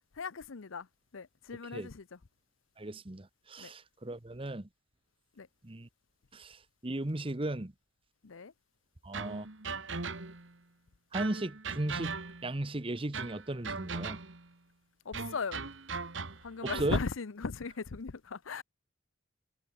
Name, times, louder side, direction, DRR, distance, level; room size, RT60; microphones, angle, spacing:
voice 1, 0.2-0.9 1.1-2.0 3.6-3.7 5.4-5.5 8.2-8.5 15.0-15.6 16.4-18.6, left 4 dB, 80° left, 0.7 m, -37 dB
voice 2, 2.8-4.7 5.6-5.9 6.3-7.7 9.0-9.5 11.1-12.2 12.4-14.2 16.6-17.0, right 1 dB, 25° right, 1.0 m, -36 dB
sound 1, 9.1-10.5 11.1-12.6 13.1-14.5 15.1-17.0, right 4 dB, 65° right, 2.0 m, -39 dB
head